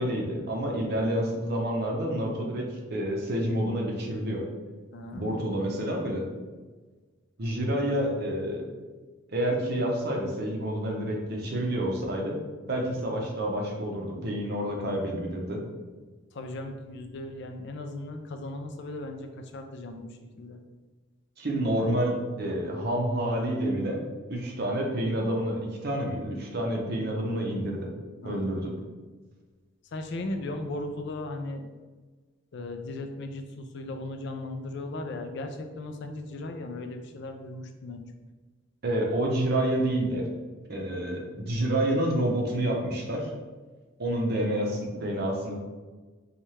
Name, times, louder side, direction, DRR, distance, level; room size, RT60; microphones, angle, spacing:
voice 1, 0.0-4.4 5.1-6.2 7.4-8.7 9.3-12.4 12.7-15.6 21.4-24.0 24.3-27.9 28.2-28.7 38.8-40.2 40.7-43.3 44.0-45.6, right 1 dB, 50° right, 0 dB, 0.7 m, -28 dB
voice 2, 4.9-5.4 16.3-20.6 28.2-28.4 29.8-31.7 32.5-38.1, left 2 dB, 55° left, 5 dB, 0.4 m, -37 dB
4.2 x 2.4 x 3.1 m, 1.3 s
head